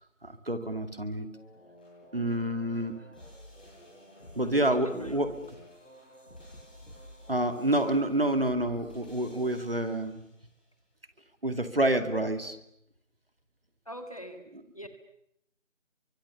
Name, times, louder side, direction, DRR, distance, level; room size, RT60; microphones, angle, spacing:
voice 1, 0.2-1.3 2.1-3.0 4.4-5.4 7.3-10.2 11.4-12.6, right 1 dB, 50° right, 9 dB, 2.3 m, -28 dB
sound 1, 1.3-10.5, left 1 dB, 5° left, 3.8 m, -52 dB
voice 2, 4.4-5.2 7.9-8.0 13.9-14.5 14.7-14.9, equal, 30° left, 7 dB, 1.9 m, -43 dB
30.0 x 24.0 x 7.0 m, 0.75 s
figure-of-eight pair, 175°, 38 cm